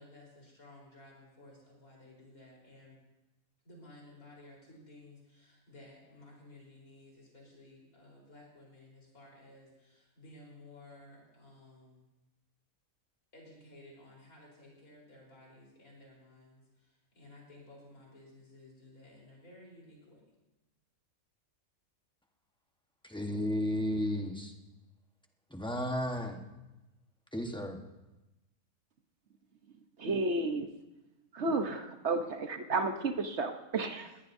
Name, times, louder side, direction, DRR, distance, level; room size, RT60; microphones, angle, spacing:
voice 1, 0.0-3.0 3.6-12.0 13.3-20.2, left 1 dB, 80° left, -3 dB, 4.6 m, -55 dB
voice 2, 23.0-24.5 25.5-26.4 27.3-27.8, left 1 dB, 5° left, 3 dB, 1.1 m, -33 dB
voice 3, 30.0-30.7 31.3-34.2, right 3 dB, 55° right, 6 dB, 1.2 m, -32 dB
21.0 x 18.5 x 2.7 m, 1.0 s
omnidirectional pair, 1.5 m